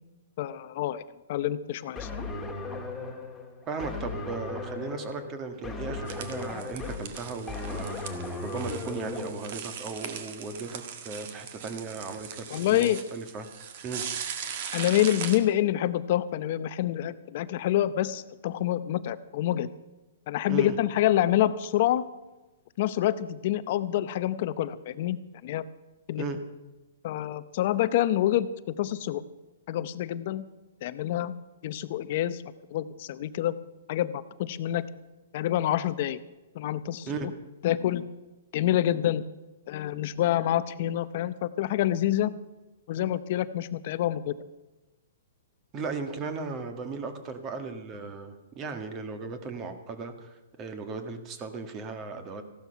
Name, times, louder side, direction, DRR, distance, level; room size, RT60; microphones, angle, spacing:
voice 1, 0.4-1.0 1.3-2.1 12.5-13.0 14.7-19.7 20.3-22.0 22.8-25.6 26.1-26.3 27.0-29.2 29.7-30.4 30.8-31.3 31.6-32.4 32.7-33.6 33.9-34.8 35.3-36.2 36.5-37.3 37.6-38.1 38.5-39.2 39.7-42.3 42.9-44.3, left 12 dB, 45° left, 14 dB, 0.7 m, -27 dB
sound 1, 2.0-9.3, left 3 dB, 5° left, 2.0 m, -37 dB
voice 2, 3.7-13.5 13.8-14.0 20.5-20.8 26.1-26.4 37.1-37.3 45.7-52.4, right 4 dB, 25° right, 8 dB, 1.6 m, -36 dB
sound 2, 6.1-15.4, right 7 dB, 45° right, 1.6 m, -39 dB
15.5 x 12.0 x 5.8 m, 1.1 s
hypercardioid pair, 150°, 0 cm